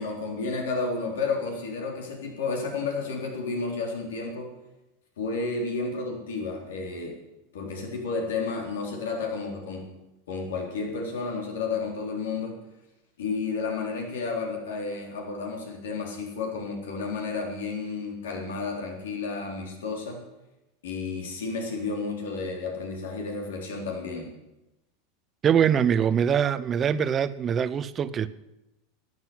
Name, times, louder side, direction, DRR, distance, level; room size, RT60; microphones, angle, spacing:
voice 1, 0.0-4.5 5.2-7.2 7.5-9.9 10.3-12.6 13.2-20.2 20.8-24.3, left 4 dB, 80° left, 3.9 m, -31 dB
voice 2, 25.4-28.3, right 8 dB, 30° right, 0.7 m, -23 dB
11.5 x 9.3 x 9.5 m
hypercardioid pair, 105°, 0 cm